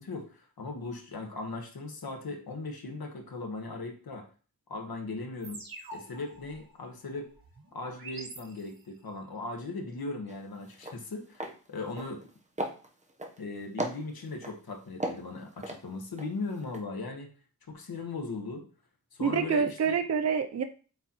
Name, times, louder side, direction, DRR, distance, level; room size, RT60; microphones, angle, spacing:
voice 1, 0.0-4.2 4.7-5.6 5.9-7.3 7.7-12.2 13.4-17.3 17.7-18.6 19.1-20.0, left 3 dB, 75° left, 3 dB, 1.4 m, -38 dB
sound 1, 5.4-9.1, right 2 dB, 70° right, 1.4 m, -47 dB
sound 2, 10.3-10.4 10.7-11.0 11.3-11.6 11.9-12.3 12.6-13.4 13.8-14.5 15.0-16.3 16.6-16.8, right 1 dB, 20° right, 0.8 m, -35 dB
voice 2, 19.2-20.6, right 6 dB, 45° right, 7 dB, 0.5 m, -27 dB
8.0 x 4.0 x 3.0 m, 0.38 s
wide cardioid pair, 120°, 36 cm